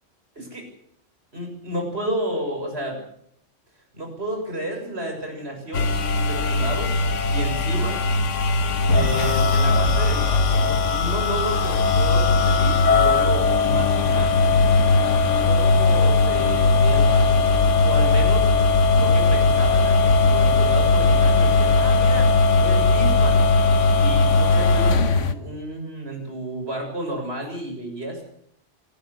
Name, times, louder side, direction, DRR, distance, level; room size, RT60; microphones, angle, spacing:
voice 1, 1.3-3.0 3.9-6.0 6.3-7.0 7.3-8.0 8.9-14.4 15.4-17.5 17.8-18.5 19.0-22.3 22.6-23.4 23.9-28.2, right 1 dB, 55° right, 2 dB, 7.2 m, -31 dB
sound 1, 5.7-25.3, left 3 dB, 80° left, 1.6 m, -18 dB
25.5 x 13.5 x 8.4 m, 0.67 s
omnidirectional pair, 1.3 m